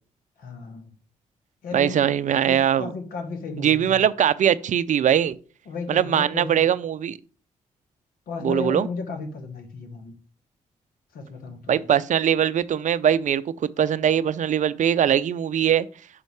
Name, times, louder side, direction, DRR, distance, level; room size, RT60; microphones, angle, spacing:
voice 1, 0.4-0.9 1.6-2.1 2.4-4.0 5.7-6.6 8.3-10.2 11.1-11.9, left 4 dB, 75° left, 1.2 m, -34 dB
voice 2, 1.7-2.9 3.6-5.4 5.9-7.2 8.4-8.9 11.7-15.9, right 9 dB, 55° right, 0.4 m, -21 dB
5.6 x 5.2 x 4.6 m
supercardioid pair, 45°, 15 cm